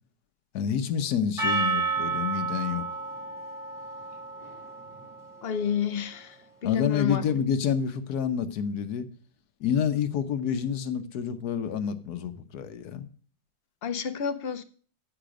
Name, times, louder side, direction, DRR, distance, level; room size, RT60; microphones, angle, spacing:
voice 1, 0.5-2.8 6.6-9.1 9.6-13.0, left 8 dB, 75° left, 1.4 m, -28 dB
Percussion, 1.4-5.9, right 4 dB, ahead, 4.9 m, -31 dB
voice 2, 5.4-7.2 13.8-14.6, left 7 dB, 55° left, 0.6 m, -29 dB
13.5 x 5.0 x 5.0 m
omnidirectional pair, 1.7 m